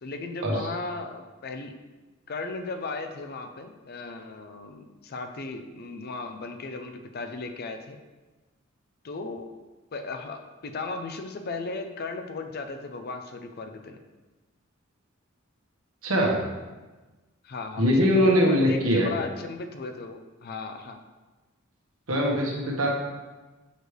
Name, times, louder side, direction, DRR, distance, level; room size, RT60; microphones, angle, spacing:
voice 1, 0.0-1.7 2.3-8.0 9.0-9.5 9.9-14.0 17.4-21.0, left 3 dB, 50° left, 6 dB, 0.5 m, -36 dB
voice 2, 16.0-16.4 17.8-19.1 22.1-22.9, equal, 75° right, -2 dB, 1.4 m, -22 dB
6.6 x 3.2 x 4.8 m, 1.2 s
head